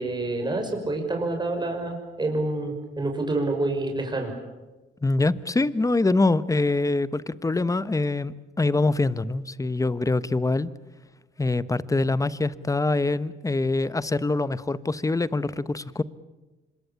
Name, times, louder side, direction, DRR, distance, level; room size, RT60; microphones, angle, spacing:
voice 1, 0.0-4.3, right 2 dB, 20° right, 3 dB, 5.8 m, -27 dB
voice 2, 5.0-10.7 11.4-16.0, left 2 dB, 15° left, 16 dB, 1.1 m, -24 dB
26.0 x 22.5 x 8.6 m, 1.1 s
cardioid pair, 90°, 20 cm